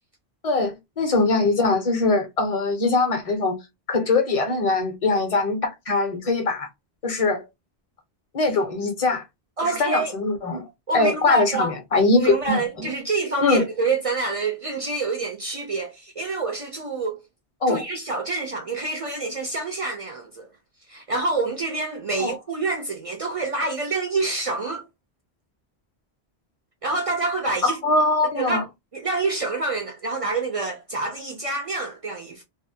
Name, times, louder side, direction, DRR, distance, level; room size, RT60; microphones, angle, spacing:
voice 1, 0.4-3.6 3.9-6.7 7.0-7.4 8.3-9.2 9.8-10.6 10.9-12.6 13.4-13.6 17.6-17.8 22.2-22.3 27.6-28.6, left 3 dB, 40° left, 0.6 m, -22 dB
voice 2, 9.6-10.1 10.9-11.7 12.1-17.2 17.7-20.5 20.9-24.8 26.8-27.8 28.4-28.6 28.9-32.4, right 3 dB, 60° right, 0.3 m, -27 dB
2.5 x 2.0 x 2.6 m
omnidirectional pair, 1.1 m